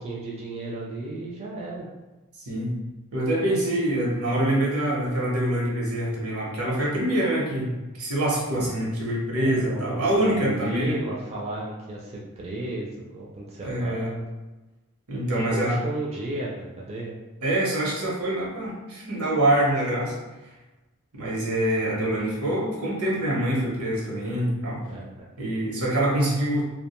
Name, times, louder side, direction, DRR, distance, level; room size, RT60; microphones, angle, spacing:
voice 1, 0.0-1.9 9.3-14.2 15.3-17.1 24.8-25.3, right 2 dB, 30° right, -4 dB, 0.4 m, -34 dB
voice 2, 3.1-7.7 8.0-11.0 13.6-14.1 15.1-15.8 17.4-20.1 21.1-24.8 25.4-26.6, right 1 dB, 80° right, -4 dB, 0.9 m, -25 dB
2.4 x 2.2 x 2.9 m, 1.1 s
head